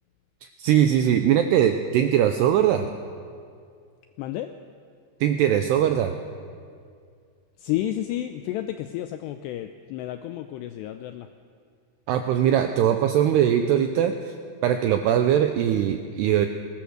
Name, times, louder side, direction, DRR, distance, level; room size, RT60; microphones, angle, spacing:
voice 1, 0.4-2.9 5.2-6.2 12.1-14.3 14.6-16.5, right 10 dB, 85° right, 7 dB, 2.4 m, -21 dB
voice 2, 4.2-4.5 7.6-11.3, left 13 dB, 85° left, 8 dB, 2.4 m, -31 dB
21.5 x 19.0 x 6.5 m, 2.2 s
omnidirectional pair, 5.6 m